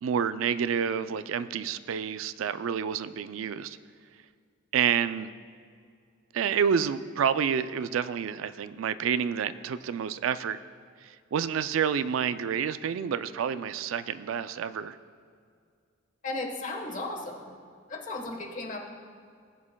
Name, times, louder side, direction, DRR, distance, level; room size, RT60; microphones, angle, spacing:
voice 1, 0.0-3.8 4.7-5.3 6.3-10.6 11.0-15.0, right 7 dB, 85° right, 13 dB, 0.3 m, -29 dB
voice 2, 16.2-17.5 17.9-18.8, left 2 dB, 40° left, 2 dB, 1.2 m, -35 dB
18.5 x 7.3 x 2.2 m, 2.2 s
head